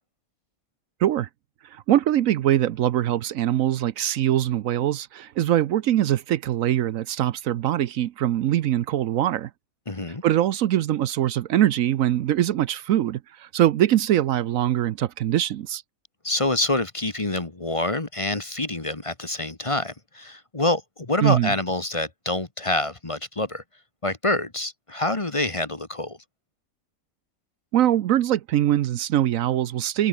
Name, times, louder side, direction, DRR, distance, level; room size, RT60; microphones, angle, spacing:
voice 1, 1.7-9.5 10.2-15.8 21.2-21.5 27.7-30.1, right 12 dB, 75° right, 1.0 m, -22 dB
voice 2, 9.9-10.2 16.2-23.6 24.0-26.2, left 2 dB, 25° left, 1.4 m, -26 dB
open air
omnidirectional pair, 1.5 m